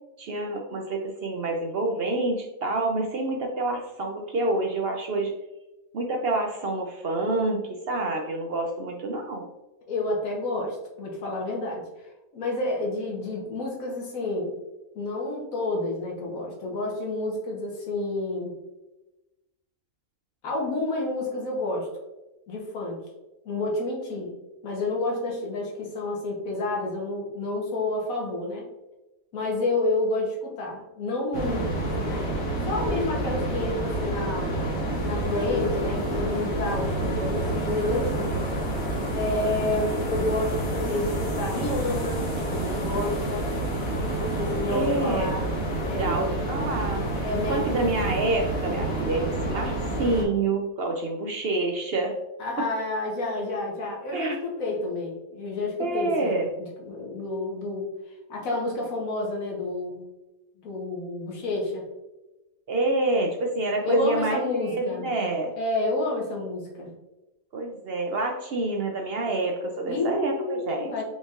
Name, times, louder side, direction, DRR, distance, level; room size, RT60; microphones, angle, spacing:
voice 1, 0.2-5.4 5.9-9.5 44.7-45.4 46.0-52.1 52.6-52.7 54.1-54.4 55.8-56.5 62.7-65.5 67.5-70.9, right 2 dB, 65° right, 2 dB, 0.6 m, -27 dB
voice 2, 9.9-11.8 12.3-14.5 14.9-18.6 20.4-21.9 22.5-23.0 23.4-24.3 24.6-28.7 29.3-34.5 35.0-38.3 39.1-43.5 44.2-45.4 45.9-46.3 47.2-47.7 52.4-56.5 56.9-57.9 58.3-60.0 60.6-61.9 63.8-65.1 65.6-66.9 69.9-71.0, left 2 dB, 65° left, -1 dB, 1.6 m, -29 dB
sound 1, 31.3-50.2, right 1 dB, 45° left, 1.3 m, -28 dB
5.1 x 4.0 x 2.5 m, 1.0 s
omnidirectional pair, 1.6 m